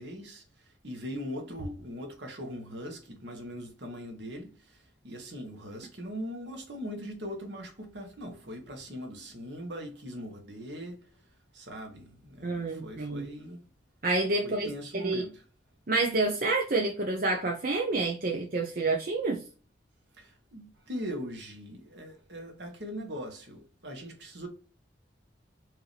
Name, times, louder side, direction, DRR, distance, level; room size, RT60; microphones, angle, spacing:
voice 1, 0.0-11.2 11.5-13.6 14.4-15.4 20.2-24.5, equal, 70° right, 1.4 m, -41 dB
voice 2, 12.4-13.3 14.0-14.7 14.9-15.2 15.9-19.4, right 3 dB, 50° right, 0.7 m, -28 dB
4.7 x 2.8 x 3.3 m
head